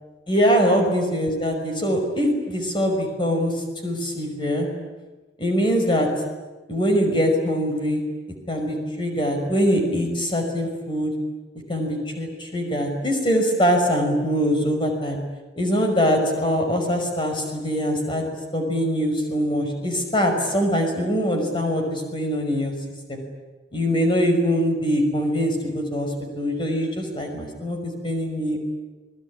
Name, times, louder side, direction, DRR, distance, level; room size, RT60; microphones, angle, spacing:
voice 1, 0.3-3.5 3.8-4.7 5.4-6.1 6.7-8.0 8.5-11.1 11.7-15.2 15.6-18.2 18.5-22.7 23.1-23.2 23.7-26.1 26.4-27.8 28.0-28.6, equal, 25° left, 3 dB, 5.9 m, -23 dB
28.5 x 21.0 x 9.9 m, 1.2 s
head